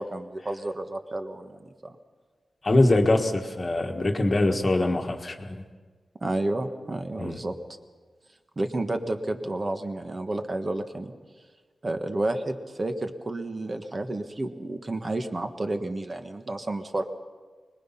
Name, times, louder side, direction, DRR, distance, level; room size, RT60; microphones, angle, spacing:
voice 1, 0.0-2.0 6.2-7.5 8.6-11.1 11.8-17.0, right 2 dB, 30° right, 6 dB, 1.5 m, -31 dB
voice 2, 2.6-5.6 7.2-7.4, left 2 dB, 30° left, 4 dB, 1.5 m, -23 dB
25.0 x 21.0 x 5.8 m, 1.5 s
wide cardioid pair, 135°, 0 cm